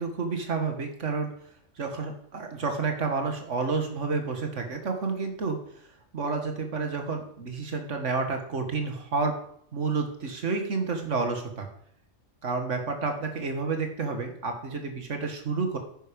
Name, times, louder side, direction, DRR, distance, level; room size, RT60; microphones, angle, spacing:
voice 1, 0.0-1.3 1.8-5.6 6.1-9.4 9.7-11.7 12.4-15.8, right 4 dB, 65° right, 5 dB, 1.9 m, -30 dB
10.5 x 9.5 x 5.2 m, 0.69 s
omnidirectional pair, 1.3 m